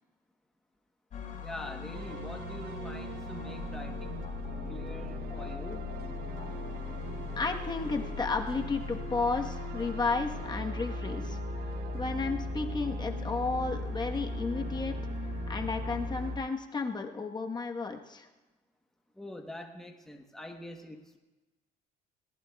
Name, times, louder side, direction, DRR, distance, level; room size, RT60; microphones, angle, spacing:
sound 1, 1.1-16.4, left 4 dB, 50° left, 4.2 m, -38 dB
voice 1, 1.3-4.4 4.7-5.9 19.2-21.2, left 1 dB, 5° left, 2 dB, 1.0 m, -44 dB
sound 2, 1.9-16.4, right 11 dB, 70° right, 0.6 m, -44 dB
voice 2, 6.8-11.4 11.9-15.0 15.5-18.3, left 4 dB, 25° left, 3 dB, 1.2 m, -33 dB
21.0 x 18.5 x 2.3 m, 1.1 s
cardioid pair, 110°, 17 cm